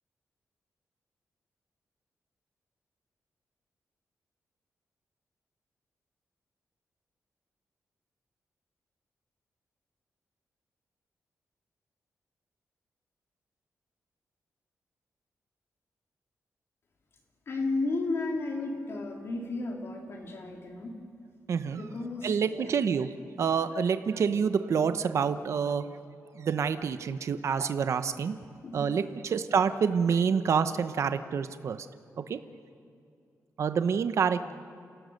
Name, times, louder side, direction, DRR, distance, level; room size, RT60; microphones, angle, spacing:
voice 1, 17.5-20.9 21.6-22.7 28.6-29.3, left 2 dB, 50° left, 1 dB, 3.3 m, -34 dB
voice 2, 21.5-21.8 22.2-25.9 26.4-28.4 28.7-31.9 32.3-32.4 33.6-34.5, right 6 dB, 55° right, 11 dB, 0.8 m, -27 dB
28.5 x 17.0 x 6.6 m, 2.4 s
wide cardioid pair, 175°, 6 cm